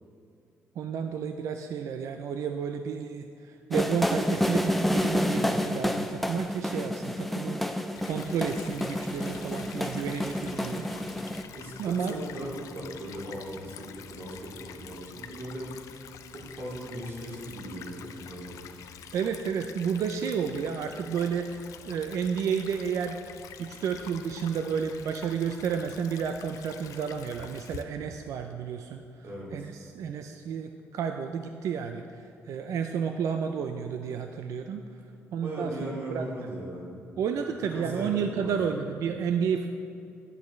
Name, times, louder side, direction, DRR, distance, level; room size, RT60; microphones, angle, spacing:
voice 1, 0.8-7.8 8.1-10.9 11.8-12.2 19.1-23.2 23.6-29.0 29.5-34.8 35.3-36.2 37.2-39.8, right 7 dB, 70° right, 6 dB, 0.4 m, -31 dB
sound 1, 3.7-11.4, left 1 dB, ahead, 0.4 m, -29 dB
Stream / Trickle dribble, 8.0-27.8, left 8 dB, 80° left, 0.5 m, -47 dB
voice 2, 11.5-15.7 16.3-18.7 29.2-29.7 35.4-36.9 37.4-37.5 37.7-38.6, right 1 dB, 45° right, -4 dB, 2.2 m, -38 dB
10.5 x 8.1 x 3.1 m, 2.6 s
cardioid pair, 140°, 6 cm